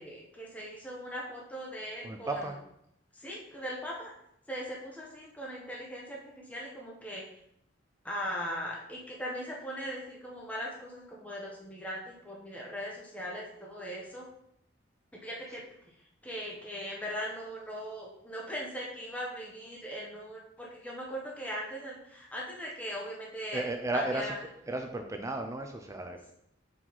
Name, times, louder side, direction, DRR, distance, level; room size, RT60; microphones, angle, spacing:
voice 1, 0.0-2.4 3.1-4.1 4.5-7.2 8.0-14.3 15.2-15.6 16.2-23.7 23.9-24.4, equal, 10° left, -3 dB, 0.9 m, -39 dB
voice 2, 2.0-2.6 23.5-24.3 24.7-26.3, right 2 dB, 15° right, 5 dB, 0.4 m, -34 dB
5.8 x 4.6 x 4.0 m, 0.76 s
head